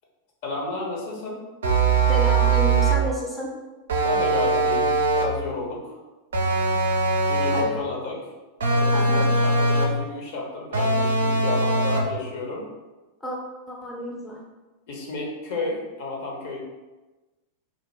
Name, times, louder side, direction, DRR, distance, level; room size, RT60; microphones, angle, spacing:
voice 1, 0.4-1.4 4.0-6.0 7.3-8.3 8.7-12.7 14.9-16.6, left 2 dB, 50° left, -2 dB, 0.6 m, -32 dB
sound 1, 1.6-3.1 3.9-5.4 6.3-7.8 8.6-10.0 10.7-12.2, right 3 dB, 65° right, 0.4 m, -21 dB
voice 2, 2.1-3.5 7.5-7.9 8.9-9.3 13.2-13.4 13.7-14.4, left 1 dB, 5° left, -3 dB, 0.5 m, -31 dB
2.5 x 2.1 x 3.0 m, 1.2 s
figure-of-eight pair, 90°, 0 cm